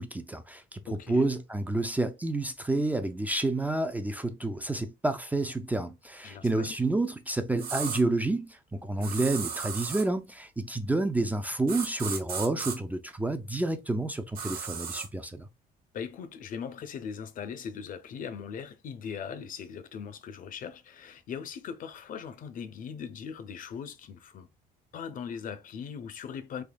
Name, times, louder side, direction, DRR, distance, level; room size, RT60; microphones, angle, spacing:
voice 1, 0.0-0.8 1.1-15.5, right 2 dB, 10° right, 0.4 m, -29 dB
voice 2, 0.9-1.3 6.2-6.8 9.0-9.3 15.9-24.5 24.9-26.6, left 7 dB, 55° left, 0.6 m, -40 dB
sound 1, 7.6-8.0 9.0-10.1 11.7-12.8 14.4-15.1, right 6 dB, 60° right, 1.2 m, -35 dB
3.5 x 3.2 x 2.3 m
cardioid pair, 110°, 17 cm